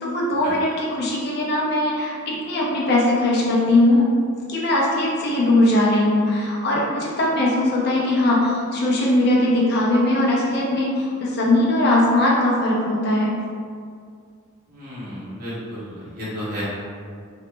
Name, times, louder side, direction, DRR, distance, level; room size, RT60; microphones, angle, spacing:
voice 1, 0.0-4.0 4.5-13.3, left 1 dB, 50° left, -4 dB, 0.5 m, -20 dB
voice 2, 14.7-16.6, equal, 45° right, -11 dB, 1.1 m, -33 dB
2.9 x 2.0 x 3.2 m, 2.2 s
head